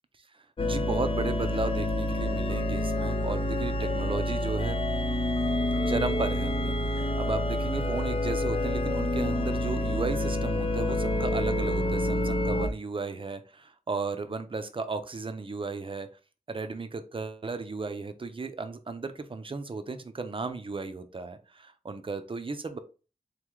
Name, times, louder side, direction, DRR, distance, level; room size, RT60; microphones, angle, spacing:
voice 1, 0.3-4.8 5.9-16.1 16.5-22.8, right 3 dB, 40° right, 9 dB, 0.6 m, -35 dB
sound 1, 0.6-12.7, left 1 dB, 40° left, 0.6 m, -28 dB
4.0 x 3.1 x 3.7 m, 0.34 s
wide cardioid pair, 90°, 14 cm